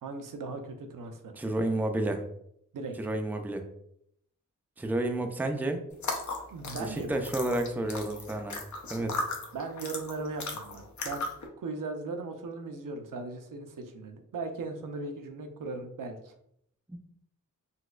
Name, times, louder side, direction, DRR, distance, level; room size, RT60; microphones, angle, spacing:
voice 1, 0.0-1.3 2.7-3.0 6.5-7.1 9.5-11.2 11.6-16.3, right 3 dB, 70° right, 6 dB, 0.6 m, -38 dB
voice 2, 1.4-2.2 3.0-3.6 4.8-5.8 6.9-8.6 8.9-9.3 16.9-17.0, right 1 dB, 5° right, 5 dB, 0.4 m, -30 dB
sound 1, 5.9-11.5, left 3 dB, 60° left, 0.7 m, -37 dB
4.0 x 2.2 x 2.3 m, 0.72 s
cardioid pair, 65°, 33 cm